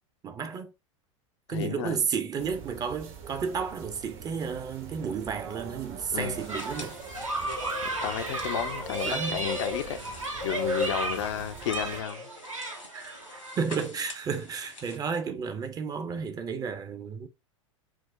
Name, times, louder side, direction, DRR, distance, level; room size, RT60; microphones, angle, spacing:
voice 1, 0.2-0.7 1.5-7.0 9.0-9.4 12.9-13.1 13.6-17.3, right 6 dB, 25° right, 0.5 m, -32 dB
voice 2, 1.5-2.0 6.1-6.4 8.0-10.0 10.4-12.3, left 9 dB, 60° left, 0.5 m, -32 dB
sound 1, 2.4-12.0, right 7 dB, 50° right, 0.9 m, -45 dB
sound 2, 6.4-15.0, left 3 dB, 80° left, 1.4 m, -48 dB
sound 3, 6.5-13.6, right 1 dB, 80° right, 1.1 m, -33 dB
4.6 x 2.0 x 3.5 m
figure-of-eight pair, 85°, 16 cm